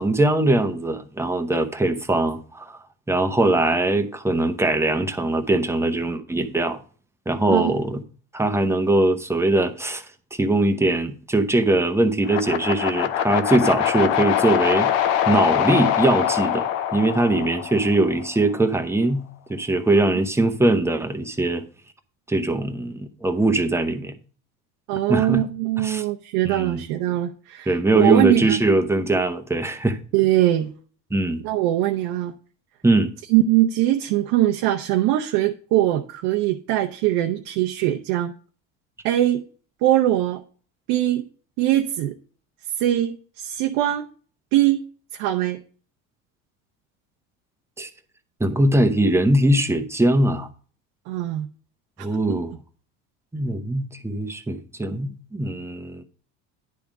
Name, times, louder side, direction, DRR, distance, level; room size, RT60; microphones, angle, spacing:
voice 1, 0.0-2.8 3.1-6.8 7.3-8.0 8.3-10.0 10.3-14.9 15.3-16.7 16.9-19.2 19.5-21.6 22.3-24.1 25.1-25.4 25.8-26.0 26.4-26.8 27.7-30.0 31.1-31.4 32.8-33.1 47.8-47.9 48.4-50.5 52.0-52.5 53.3-56.0, right 2 dB, 5° right, 0.9 m, -21 dB
sound 1, 12.2-18.4, left 10 dB, 85° left, 0.8 m, -23 dB
voice 2, 24.9-28.6 30.1-30.7 31.4-32.3 33.3-38.3 39.0-39.4 39.8-40.4 40.9-41.2 41.6-42.1 42.8-44.0 44.5-44.8 45.1-45.6 51.1-51.5 52.3-52.4, right 14 dB, 70° right, 0.7 m, -21 dB
10.5 x 3.5 x 6.0 m
supercardioid pair, 85°, 39 cm